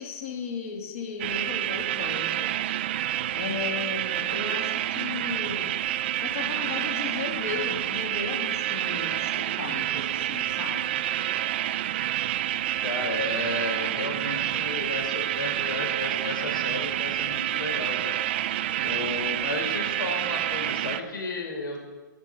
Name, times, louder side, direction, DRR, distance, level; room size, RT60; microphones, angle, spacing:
voice 1, 0.0-2.6 3.4-5.7 6.2-10.9, left 5 dB, 40° left, 3 dB, 2.4 m, -35 dB
sound 1, 1.2-21.0, right 12 dB, 30° right, 0.4 m, -28 dB
voice 2, 12.8-21.8, left 2 dB, 80° left, 2 dB, 4.8 m, -33 dB
14.0 x 8.6 x 6.1 m, 1.2 s
hypercardioid pair, 165°, 11 cm